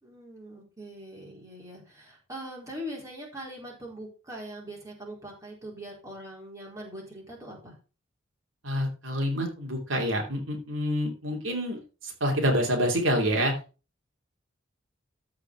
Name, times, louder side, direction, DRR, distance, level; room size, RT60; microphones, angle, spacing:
voice 1, 0.0-7.8, equal, 15° right, -2 dB, 4.1 m, -42 dB
voice 2, 8.6-13.6, equal, 75° right, 1 dB, 2.8 m, -27 dB
14.0 x 5.2 x 4.6 m, 0.32 s
head